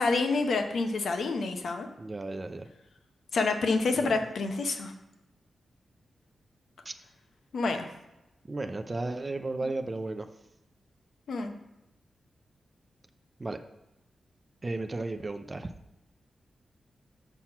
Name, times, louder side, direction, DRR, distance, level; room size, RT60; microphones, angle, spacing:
voice 1, 0.0-1.9 3.3-4.9 7.5-7.9 11.3-11.6, left 3 dB, 75° left, 5 dB, 0.9 m, -28 dB
voice 2, 2.0-2.7 3.9-4.1 6.9-7.0 8.5-10.3 13.4-13.6 14.6-15.7, right 2 dB, 25° right, 7 dB, 0.5 m, -34 dB
6.0 x 5.9 x 5.7 m, 0.95 s
wide cardioid pair, 135°, 0 cm